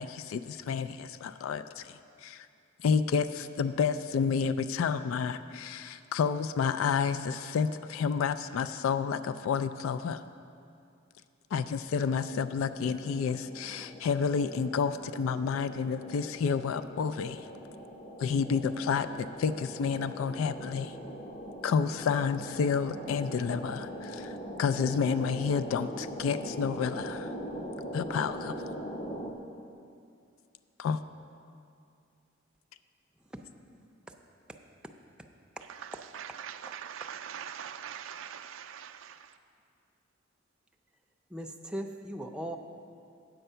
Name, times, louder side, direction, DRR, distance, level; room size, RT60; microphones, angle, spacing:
voice 1, 0.0-1.9 2.2-2.5 2.8-10.2 11.5-17.5 18.2-19.1 19.4-21.0 21.6-27.3 27.9-28.5 30.8-31.0, left 6 dB, 85° left, 0.3 m, -30 dB
sound 1, 12.0-29.3, equal, 35° left, 0.7 m, -42 dB
voice 2, 35.7-39.4, right 8 dB, 75° right, 0.4 m, -42 dB
voice 3, 41.3-42.6, right 1 dB, 5° right, 0.5 m, -38 dB
8.9 x 7.9 x 5.5 m
head